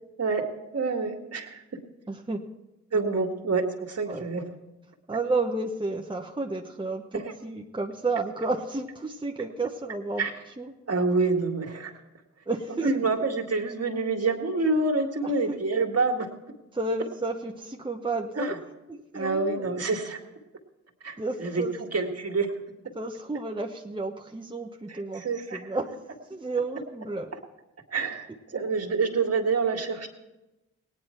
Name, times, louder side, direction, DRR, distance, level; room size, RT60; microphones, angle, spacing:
voice 1, 0.7-1.8 2.9-4.5 7.1-7.3 10.2-10.3 10.9-11.9 12.8-16.3 18.4-18.6 19.1-20.2 21.0-21.6 21.9-22.5 24.9-25.7 27.9-30.1, right 3 dB, 50° right, 3 dB, 1.9 m, -27 dB
voice 2, 2.1-2.4 4.1-4.3 5.1-10.3 10.6-10.7 12.5-12.9 15.2-15.6 16.7-18.5 18.9-19.8 21.2-21.7 22.9-25.2 25.5-26.0 26.3-27.3, right 3 dB, 15° right, 2 dB, 1.0 m, -31 dB
17.5 x 9.6 x 4.4 m, 0.99 s
cardioid pair, 45°, 31 cm